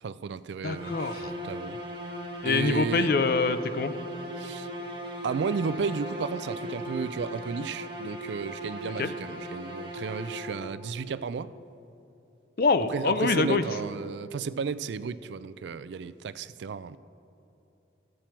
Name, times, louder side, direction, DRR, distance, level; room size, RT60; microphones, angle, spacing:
voice 1, 0.0-1.8 2.4-3.1 4.4-4.7 5.2-11.5 12.9-17.0, right 5 dB, 80° right, 0.4 m, -33 dB
voice 2, 0.6-1.3 2.4-3.9 9.0-9.1 12.6-13.6, left 4 dB, 55° left, 0.5 m, -25 dB
sound 1, 0.7-10.9, equal, 30° right, 1.2 m, -38 dB
14.0 x 7.5 x 4.4 m
head